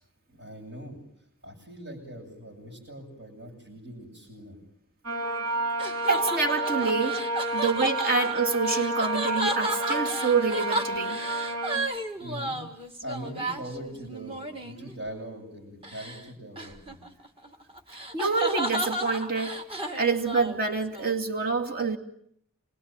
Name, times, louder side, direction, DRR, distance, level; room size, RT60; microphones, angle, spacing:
voice 1, 0.3-1.0 1.4-4.6 12.1-17.0, equal, 65° right, -3 dB, 7.7 m, -41 dB
sound 1, 5.0-11.8, right 2 dB, 85° right, 3.9 m, -30 dB
sound 2, 5.1-14.9 15.8-16.2 16.6-21.1, right 1 dB, 25° right, 2.2 m, -33 dB
voice 2, 6.1-7.2 7.5-11.2 18.1-19.6 19.9-22.0, right 4 dB, 45° right, 3 dB, 2.7 m, -27 dB
27.5 x 22.5 x 9.1 m, 0.70 s
head